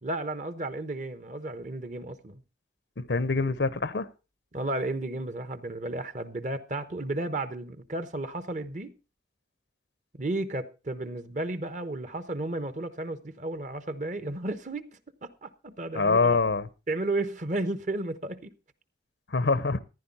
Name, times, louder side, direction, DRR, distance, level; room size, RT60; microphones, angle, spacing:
voice 1, 0.0-2.4 4.5-8.9 10.1-14.9 15.2-16.4 16.9-18.5, right 2 dB, 40° right, 1.0 m, -33 dB
voice 2, 3.0-4.1 15.9-16.7 19.3-19.8, left 4 dB, 80° left, 0.8 m, -25 dB
14.5 x 10.5 x 4.2 m
head